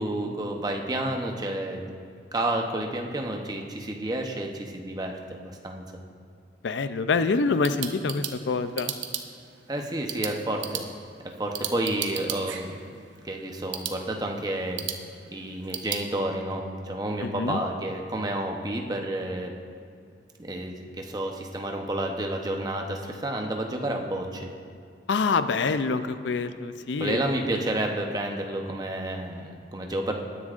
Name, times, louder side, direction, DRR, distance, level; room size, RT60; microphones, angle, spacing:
voice 1, 0.0-1.8 2.3-6.0 9.7-10.9 11.4-12.8 13.2-14.9 15.3-19.5 20.4-24.5 27.0-30.1, right 1 dB, 20° right, 2 dB, 0.8 m, -30 dB
voice 2, 6.6-8.9 17.2-17.6 25.1-27.2, left 4 dB, 75° left, 11 dB, 0.5 m, -26 dB
sound 1, 7.3-16.1, right 9 dB, 85° right, 0.8 m, -37 dB
19.5 x 9.9 x 2.5 m, 2.3 s
head